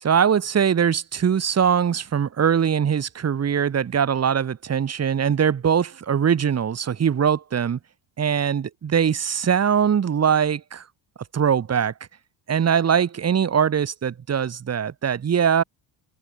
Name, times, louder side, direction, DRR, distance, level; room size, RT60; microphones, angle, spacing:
voice 1, 0.0-7.8 8.2-10.8 11.3-11.9 12.5-15.6, right 8 dB, 35° right, 4.3 m, -21 dB
cardioid pair, 130°, 42 cm